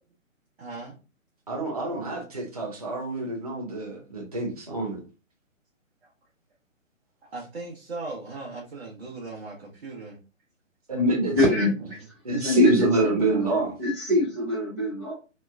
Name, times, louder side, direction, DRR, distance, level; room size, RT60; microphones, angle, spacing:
voice 1, 0.6-1.0 6.0-6.1 7.2-10.2, right 3 dB, 45° right, -3 dB, 0.8 m, -38 dB
voice 2, 1.5-5.0 10.9-11.7 12.2-13.7, right 2 dB, 30° right, 0 dB, 0.4 m, -26 dB
voice 3, 11.3-12.0 12.4-13.5 13.8-15.1, left 2 dB, 10° left, -14 dB, 0.6 m, -24 dB
2.8 x 2.2 x 2.3 m, 0.32 s
figure-of-eight pair, 140°, 41 cm